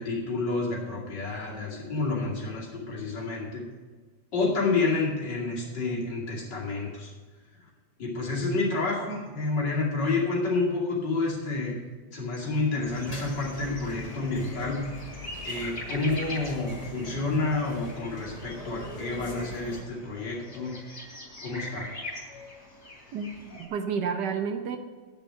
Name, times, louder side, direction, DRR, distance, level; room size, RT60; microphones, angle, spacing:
voice 1, 0.0-3.6 4.3-7.1 8.0-11.8 12.1-14.9 15.4-20.7 21.4-21.9, left 3 dB, 70° left, -4 dB, 3.2 m, -29 dB
sound 1, 12.3-23.7, left 1 dB, 40° left, 3.2 m, -43 dB
sound 2, 12.8-19.8, left 1 dB, 25° left, 1.2 m, -43 dB
voice 2, 23.1-24.8, right 6 dB, 70° right, 7 dB, 1.4 m, -30 dB
10.5 x 6.9 x 7.9 m, 1.4 s
omnidirectional pair, 2.0 m